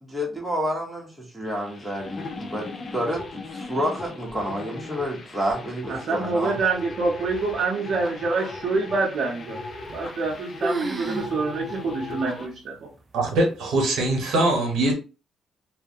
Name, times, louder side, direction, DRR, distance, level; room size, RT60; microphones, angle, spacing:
voice 1, 0.0-6.6, equal, 10° right, 0.9 m, -29 dB
sound 1, 1.5-12.5, left 3 dB, 45° left, 0.5 m, -38 dB
voice 2, 5.9-9.6 9.9-12.7, right 3 dB, 60° right, 0.7 m, -26 dB
sound 2, 9.8-10.3 10.6-11.3 11.7-11.8 12.5-12.6 13.3-13.7, right 2 dB, 25° right, 0.4 m, -30 dB
voice 3, 13.1-14.9, right 2 dB, 80° right, 1.0 m, -22 dB
2.3 x 2.1 x 2.7 m
cardioid pair, 90°, 0 cm